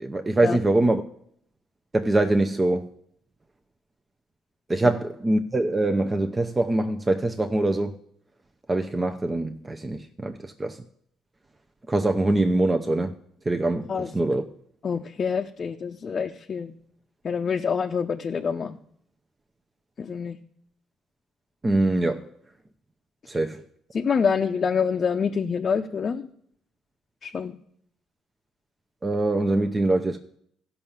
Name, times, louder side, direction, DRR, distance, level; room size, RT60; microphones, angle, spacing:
voice 1, 0.0-1.0 1.9-2.9 4.7-7.9 8.7-10.8 11.9-13.1 13.5-14.4 21.6-22.3 23.3-23.6 29.0-30.2, right 2 dB, 20° right, 0.7 m, -23 dB
voice 2, 14.8-16.7 17.2-18.8 20.0-20.4 23.9-26.3 27.2-27.6, left 6 dB, 40° left, 0.6 m, -26 dB
14.0 x 5.6 x 7.2 m
supercardioid pair, 80°, 0 cm